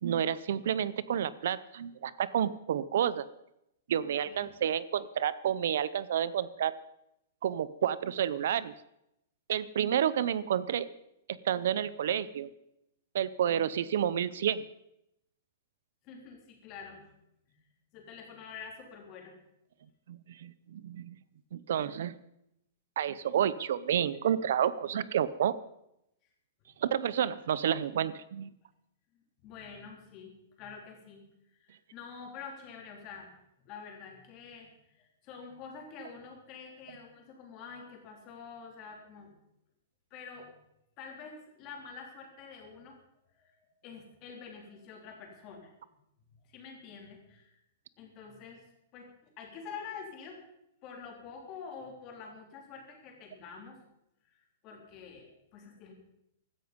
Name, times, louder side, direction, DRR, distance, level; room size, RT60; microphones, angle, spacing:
voice 1, 0.0-3.3 3.9-6.7 7.4-8.7 9.5-10.9 11.3-12.5 13.1-14.6 20.1-21.2 21.5-22.1 23.0-25.6 26.8-28.5, right 9 dB, 60° right, 17 dB, 0.7 m, -30 dB
voice 2, 16.0-17.0 17.5-17.6 17.9-19.3 29.4-31.2 31.6-33.3 33.6-39.3 40.1-40.5 41.0-43.0 43.3-45.7 46.5-47.5 48.0-48.7 48.9-50.4 50.8-53.8 54.3-55.9, left 5 dB, 25° left, 1 dB, 3.7 m, -47 dB
16.0 x 13.5 x 5.3 m, 0.82 s
hypercardioid pair, 170°, 0 cm